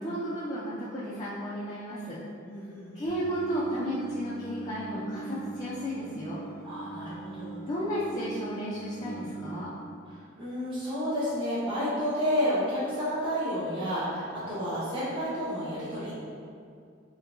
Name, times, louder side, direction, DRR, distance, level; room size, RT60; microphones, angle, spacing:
voice 1, 0.0-2.2 2.9-6.4 7.7-9.7, equal, 20° left, -11 dB, 0.5 m, -33 dB
voice 2, 2.4-3.0 6.6-7.6 10.4-16.1, equal, 25° right, -12 dB, 1.2 m, -30 dB
Singing, 3.0-9.6, right 3 dB, 45° right, 0.7 m, -41 dB
5.4 x 2.2 x 2.6 m, 2.4 s
head